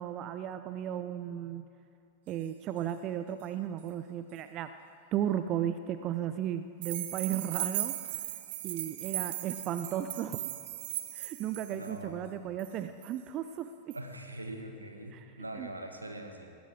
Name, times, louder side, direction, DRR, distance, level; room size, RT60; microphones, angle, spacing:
voice 1, 0.0-1.6 2.3-4.7 5.1-7.9 8.6-10.5 11.1-14.0 15.1-15.3 15.6-15.7, right 10 dB, 35° right, 10 dB, 0.5 m, -35 dB
sound 1, 6.8-11.9 12.6-12.7 13.0-13.1 13.9-14.0, right 14 dB, 50° right, 0.9 m, -37 dB
voice 2, 11.7-12.5 13.9-16.6, right 1 dB, 80° right, 4 dB, 1.6 m, -43 dB
21.0 x 17.5 x 3.6 m, 2.6 s
figure-of-eight pair, 90°, 0 cm